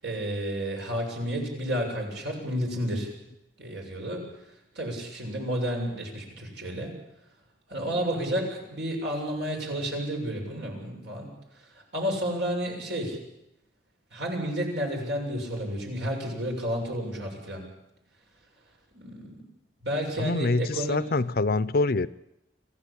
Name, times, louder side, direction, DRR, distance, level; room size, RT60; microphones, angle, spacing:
voice 1, 0.0-3.1 3.6-4.2 4.8-6.9 7.7-11.3 11.9-13.2 14.1-17.6 18.9-19.4 19.8-21.0, equal, 75° right, 7.1 m, -31 dB
voice 2, 20.2-22.1, left 3 dB, 60° left, 0.7 m, -25 dB
25.5 x 15.5 x 8.6 m
head